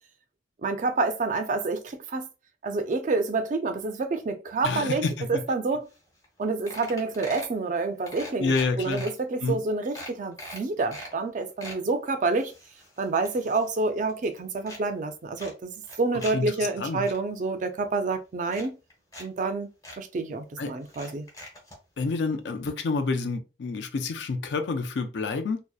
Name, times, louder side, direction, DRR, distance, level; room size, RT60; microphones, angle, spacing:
voice 1, 0.6-2.3 2.6-5.9 6.4-12.5 13.0-18.8 19.2-19.7 20.0-21.3, right 3 dB, 45° right, 0.3 m, -28 dB
voice 2, 4.6-5.1 8.4-9.1 9.4-9.6 16.3-16.5 16.8-17.0 20.6-20.8 22.0-25.6, left 4 dB, 70° left, 0.4 m, -28 dB
sound 1, 5.9-6.0 6.2-6.4 6.7-7.6 8.1-9.1 9.6-9.7 9.9-11.1 11.4-11.8 12.3-13.8 14.1-14.8 15.4-16.3 16.7-17.2 18.0-18.1 18.5-19.3 19.5-19.6 19.8-20.0 20.9-21.8 22.7-22.8 23.0-23.1, left 1 dB, 20° left, 0.7 m, -43 dB
2.7 x 2.0 x 2.3 m
head